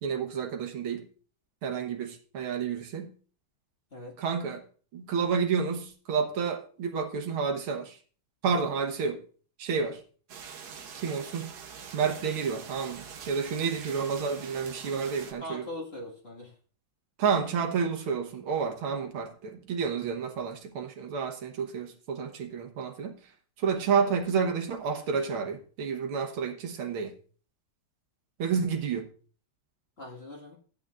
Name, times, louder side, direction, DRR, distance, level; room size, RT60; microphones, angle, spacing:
voice 1, 0.0-1.1 1.6-3.1 4.2-4.6 4.9-8.0 8.4-9.2 9.6-10.0 11.0-11.5 11.9-15.7 17.2-23.2 23.6-27.1 28.4-29.1, right 6 dB, 75° right, 2.0 m, -30 dB
sound 1, 10.3-15.3, right 6 dB, 55° right, 1.3 m, -44 dB
voice 2, 15.4-16.5 30.0-30.6, left 1 dB, 30° left, 1.9 m, -41 dB
14.5 x 8.9 x 2.5 m
omnidirectional pair, 2.4 m